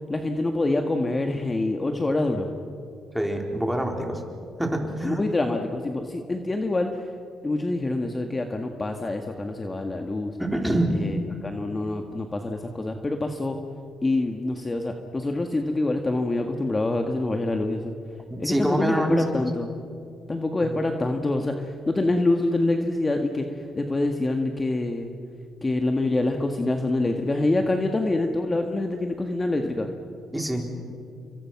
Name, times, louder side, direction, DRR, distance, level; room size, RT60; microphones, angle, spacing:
voice 1, 0.1-2.5 5.0-7.0 7.4-10.4 10.9-13.6 14.0-17.9 18.4-19.7 20.3-23.4 23.8-25.1 25.6-29.9, left 2 dB, 25° left, 4 dB, 1.8 m, -26 dB
voice 2, 3.1-4.2 4.6-5.2 10.4-11.0 18.3-19.4 30.3-30.7, right 1 dB, 5° right, 2 dB, 4.0 m, -25 dB
30.0 x 24.0 x 6.1 m, 2.3 s
cardioid pair, 90°, 0 cm